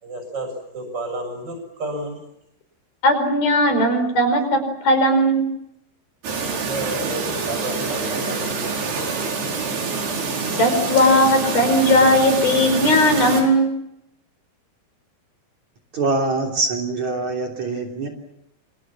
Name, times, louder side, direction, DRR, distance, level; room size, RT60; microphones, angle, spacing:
voice 1, 0.0-2.2 6.4-8.7, right 1 dB, 25° right, 6 dB, 7.5 m, -31 dB
voice 2, 3.0-5.5 10.6-13.7, equal, 65° left, 7 dB, 7.0 m, -17 dB
Chirp tweet, 6.2-13.4, right 4 dB, 85° right, 6.8 m, -26 dB
voice 3, 15.9-18.1, right 3 dB, 45° right, 1 dB, 4.3 m, -24 dB
27.5 x 26.5 x 7.3 m, 0.82 s
omnidirectional pair, 4.6 m